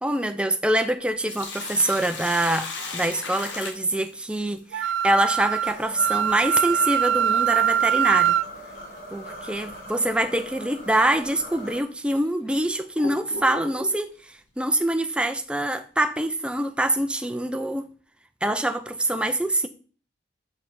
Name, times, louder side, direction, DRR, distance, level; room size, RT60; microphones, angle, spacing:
voice 1, 0.0-8.4 9.1-17.8 18.4-19.7, right 1 dB, 5° right, 0.5 m, -25 dB
Sink (filling or washing), 1.0-4.6 7.0-7.1 9.0-9.2 9.7-9.8 10.6-10.7 11.4-11.5 12.1-14.0, left 4 dB, 65° left, 1.4 m, -36 dB
Wind instrument woodwind instrument, 4.7-8.5, right 9 dB, 75° right, 0.3 m, -22 dB
sound 1, 5.6-11.8, equal, 50° left, 3.6 m, -41 dB
6.7 x 5.5 x 4.6 m
head